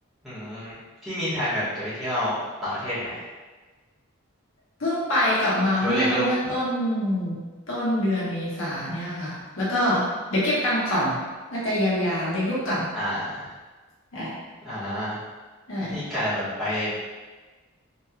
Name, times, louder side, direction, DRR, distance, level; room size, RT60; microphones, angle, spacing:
voice 1, 0.2-0.7 1.0-3.2 5.8-6.3 12.9-13.5 14.6-15.2 15.9-17.0, equal, ahead, -14 dB, 1.3 m, -28 dB
voice 2, 4.8-7.4 7.7-11.2 11.5-12.9 14.1-14.3 15.7-16.0, left 1 dB, 70° left, -8 dB, 1.1 m, -25 dB
3.3 x 2.8 x 2.3 m, 1.3 s
head